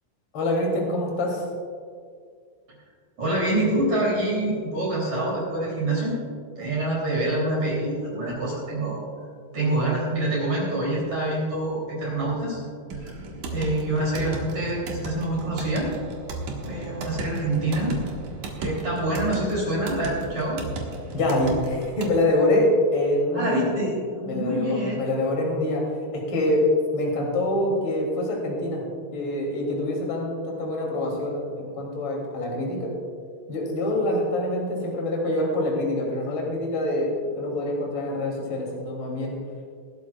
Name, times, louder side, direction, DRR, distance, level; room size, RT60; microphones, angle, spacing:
voice 1, 0.3-1.4 21.1-23.6 24.3-25.8 26.3-26.6 26.9-28.8 29.1-32.9 33.5-39.3, left 1 dB, 30° left, -2 dB, 2.5 m, -25 dB
voice 2, 3.2-6.2 6.6-9.0 9.5-12.6 13.0-13.2 13.5-15.9 16.6-18.0 18.6-20.6 23.3-25.0, right 1 dB, 40° right, -5 dB, 3.7 m, -26 dB
sound 1, 12.9-22.2, right 2 dB, 75° right, 1.8 m, -34 dB
22.0 x 12.0 x 2.4 m, 2.2 s
omnidirectional pair, 6.0 m